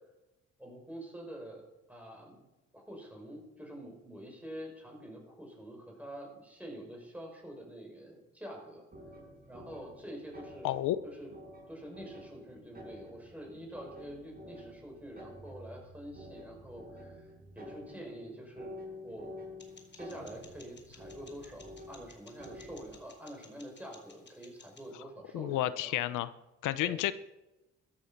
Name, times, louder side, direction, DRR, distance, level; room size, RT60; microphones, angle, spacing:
voice 1, 0.6-2.5 2.7-8.8 9.5-11.3 11.7-17.3 17.5-19.4 19.9-26.0 26.8-27.0, equal, 5° right, 1 dB, 5.9 m, -47 dB
sound 1, 8.9-23.1, left 1 dB, 30° right, 6.4 m, -50 dB
voice 2, 10.6-11.0 25.3-26.3 26.6-27.1, left 14 dB, 90° left, 14 dB, 0.7 m, -31 dB
sound 2, 19.6-24.9, left 4 dB, 35° left, 2.7 m, -58 dB
14.0 x 12.0 x 5.8 m, 0.97 s
cardioid pair, 90°, 30 cm